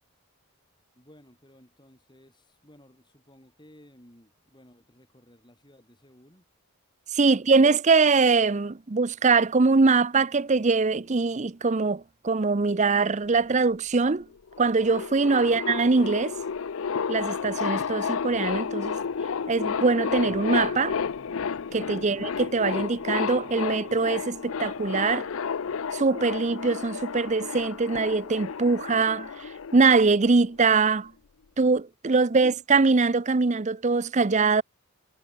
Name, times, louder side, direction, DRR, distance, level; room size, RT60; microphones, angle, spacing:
voice 1, 0.9-6.5 7.2-7.8 15.4-15.6 32.3-32.6, equal, 20° left, 6.4 m, -56 dB
voice 2, 7.1-14.3 14.6-16.4 17.1-19.0 19.5-21.0 21.7-25.3 25.9-31.1 31.6-34.6, right 4 dB, 35° right, 0.6 m, -23 dB
sound 1, 14.2-14.3 14.5-30.4, left 6 dB, 65° left, 0.5 m, -31 dB
head